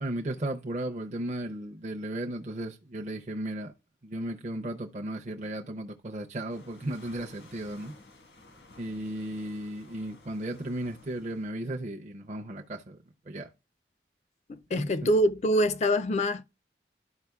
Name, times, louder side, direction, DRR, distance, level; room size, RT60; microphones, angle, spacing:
voice 1, 0.0-3.7 4.0-7.9 8.8-13.0 13.3-13.5 14.7-15.1, right 1 dB, 40° right, 0.5 m, -35 dB
sound 1, 6.5-11.5, left 2 dB, 90° left, 1.5 m, -54 dB
voice 2, 14.5-16.4, equal, 40° left, 0.3 m, -25 dB
12.0 x 5.0 x 2.3 m
head